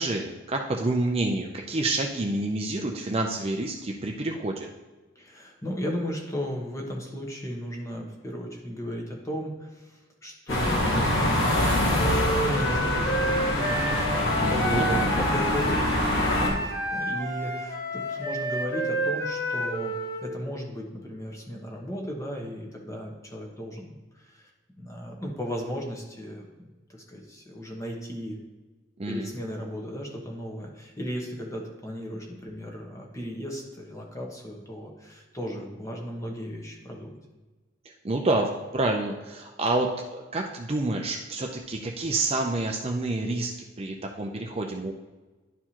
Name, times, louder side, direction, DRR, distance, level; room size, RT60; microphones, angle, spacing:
voice 1, 0.0-4.7 14.4-15.1 29.0-29.3 37.9-44.9, right 2 dB, 30° right, 2 dB, 0.5 m, -28 dB
voice 2, 5.2-19.9 20.2-24.5 24.8-28.4 29.1-37.2, equal, 15° left, 0 dB, 1.1 m, -35 dB
sound 1, 10.5-16.5, left 1 dB, 80° left, 2.0 m, -24 dB
Wind instrument woodwind instrument, 12.0-20.3, right 1 dB, 55° left, 1.7 m, -30 dB
11.0 x 4.6 x 2.9 m, 1.2 s
head